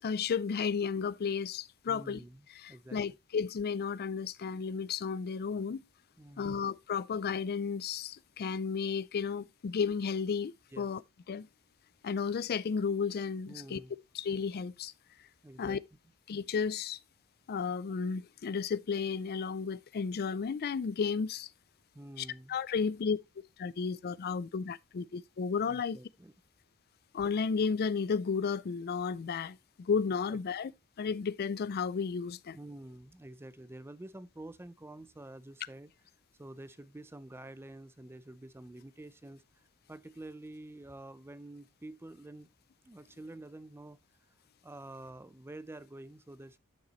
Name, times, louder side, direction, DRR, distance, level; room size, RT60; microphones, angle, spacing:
voice 1, 0.0-2.2 2.6-5.8 6.4-11.0 11.3-11.5 12.0-13.8 14.1-14.9 15.6-15.8 16.3-17.0 17.5-21.5 22.2-23.2 23.6-26.0 27.1-30.7 31.0-32.6, left 5 dB, 45° left, 0.4 m, -33 dB
voice 2, 1.9-3.0 6.2-6.6 10.7-10.9 13.5-13.9 15.4-15.8 21.9-22.6 25.7-26.3 30.3-30.4 32.5-35.9 36.4-39.4 39.9-42.5 42.8-44.0 44.6-46.6, right 1 dB, 10° right, 0.5 m, -48 dB
11.0 x 6.6 x 3.0 m
head